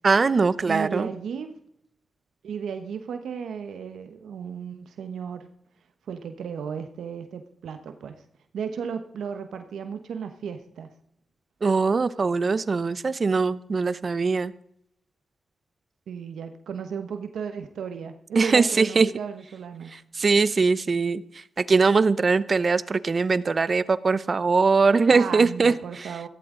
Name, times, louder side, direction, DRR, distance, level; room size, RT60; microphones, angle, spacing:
voice 1, 0.0-1.1 11.6-14.5 18.4-19.1 19.9-21.2 21.6-26.1, right 4 dB, 50° right, 17 dB, 0.7 m, -21 dB
voice 2, 0.6-1.5 2.4-5.5 6.1-8.2 8.5-10.9 16.1-19.9 25.1-26.3, right 7 dB, 85° right, 8 dB, 1.0 m, -34 dB
15.5 x 13.0 x 3.8 m, 0.73 s
cardioid pair, 55°, 0 cm